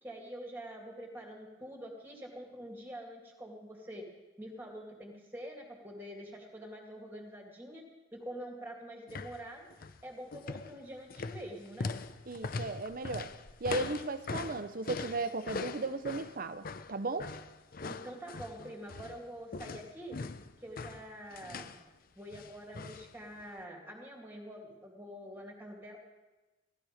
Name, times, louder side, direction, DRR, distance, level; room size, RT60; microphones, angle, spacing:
voice 1, 0.0-4.1 4.4-7.9 8.1-9.7 10.0-11.9 17.8-20.2 20.6-21.7 22.2-26.0, equal, 10° right, 0 dB, 2.2 m, -46 dB
sound 1, 9.1-9.4 9.7-10.0 10.3-19.2 19.5-21.8 22.3-23.1 23.4-23.5, left 4 dB, 50° left, 0.6 m, -41 dB
voice 2, 12.3-13.3 13.6-17.3, right 3 dB, 50° right, 12 dB, 0.8 m, -36 dB
15.5 x 12.0 x 5.1 m, 1.1 s
head